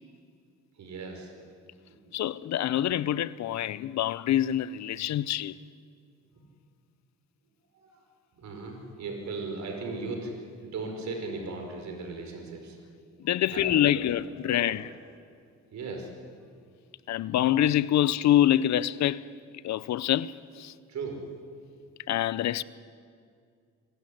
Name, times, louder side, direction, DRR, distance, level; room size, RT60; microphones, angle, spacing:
voice 1, 0.8-1.3 1.9-2.0 7.8-7.9 8.4-10.3 10.6-12.8 13.5-14.0 14.4-14.7 15.7-16.1 20.9-21.2, right 3 dB, 65° right, 5.0 m, -37 dB
voice 2, 2.1-5.6 13.2-14.9 17.1-19.2 19.6-20.7 22.1-22.6, left 12 dB, 65° left, 0.6 m, -26 dB
24.5 x 12.5 x 10.0 m
cardioid pair, 90°, 30 cm